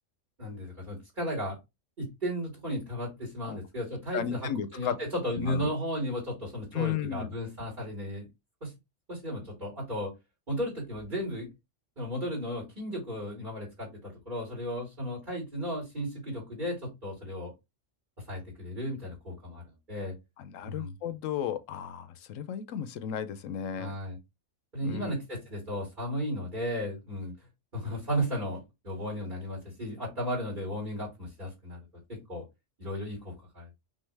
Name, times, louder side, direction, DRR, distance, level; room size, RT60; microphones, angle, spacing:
voice 1, 0.4-1.6 2.0-8.3 8.6-8.7 9.1-10.1 10.5-11.5 12.0-17.5 18.3-20.1 20.6-20.9 23.8-24.2 24.7-27.3 27.7-32.4 32.8-33.7, equal, 40° right, 2.7 m, -35 dB
voice 2, 4.1-5.0 5.4-5.7 6.7-7.3 20.4-23.9 24.8-25.1, left 9 dB, 90° left, 1.0 m, -34 dB
5.6 x 2.8 x 3.3 m
omnidirectional pair, 1.3 m